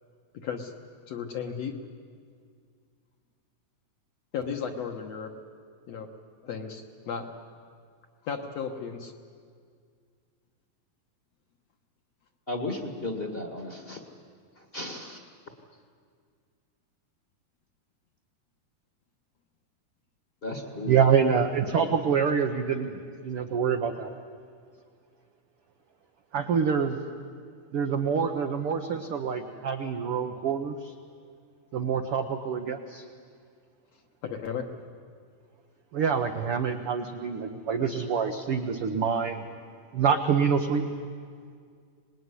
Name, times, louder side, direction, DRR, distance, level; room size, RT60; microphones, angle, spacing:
voice 1, 0.3-0.7 1.1-1.8 4.3-5.3 5.9-6.1 6.4-7.3 8.2-9.1 34.2-34.7, left 6 dB, 60° left, 4 dB, 2.0 m, -34 dB
voice 2, 12.5-14.0 14.7-15.2 20.4-21.0, left 2 dB, 25° left, 4 dB, 1.2 m, -34 dB
voice 3, 20.8-22.9 23.2-24.1 26.3-27.0 27.7-30.9 31.7-33.0 35.9-39.4 39.9-40.8, right 6 dB, 85° right, 5 dB, 1.2 m, -26 dB
26.0 x 20.0 x 9.7 m, 2.1 s
omnidirectional pair, 4.1 m